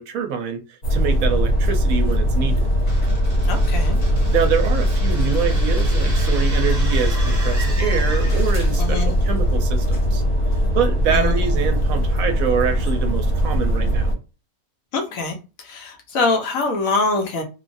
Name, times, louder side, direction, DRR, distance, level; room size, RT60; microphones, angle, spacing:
voice 1, 0.0-2.7 4.3-10.2 10.7-14.1, right 7 dB, 75° right, 1.0 m, -25 dB
sound 1, 0.8-14.1, equal, 90° left, 1.5 m, -20 dB
sound 2, 2.9-8.8, right 1 dB, 15° right, 0.7 m, -36 dB
voice 2, 3.4-4.0 8.8-9.1 11.1-11.5 14.9-17.4, left 3 dB, 70° left, 1.1 m, -24 dB
3.0 x 2.2 x 2.6 m
omnidirectional pair, 1.5 m